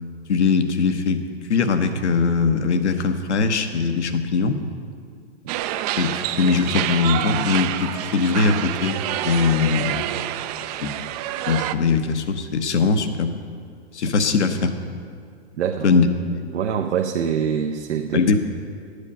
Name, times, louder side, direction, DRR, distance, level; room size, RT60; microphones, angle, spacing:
voice 1, 0.3-1.2 1.5-4.6 6.0-10.1 10.8-10.9 11.5-13.4 13.9-14.7 15.8-16.0 18.1-18.4, left 5 dB, 85° left, 8 dB, 1.0 m, -21 dB
sound 1, 5.5-11.7, right 13 dB, 35° right, 0.4 m, -27 dB
voice 2, 15.6-16.0 16.5-18.2, right 8 dB, 75° right, 4 dB, 0.7 m, -25 dB
11.0 x 8.3 x 5.4 m, 2.3 s
hypercardioid pair, 120°, 34 cm